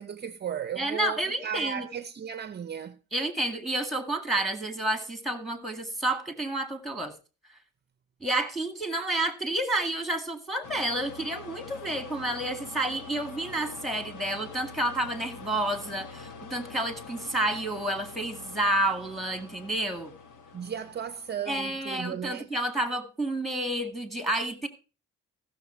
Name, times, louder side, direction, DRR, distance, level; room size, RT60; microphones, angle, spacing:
voice 1, 0.0-3.0 20.5-22.5, right 8 dB, 35° right, 0.6 m, -35 dB
voice 2, 0.8-1.9 3.1-7.1 8.2-20.1 21.5-24.7, right 1 dB, ahead, 1.9 m, -30 dB
sound 1, 10.6-21.8, left 5 dB, 85° left, 1.2 m, -45 dB
15.0 x 6.5 x 4.4 m
cardioid pair, 90°, 30 cm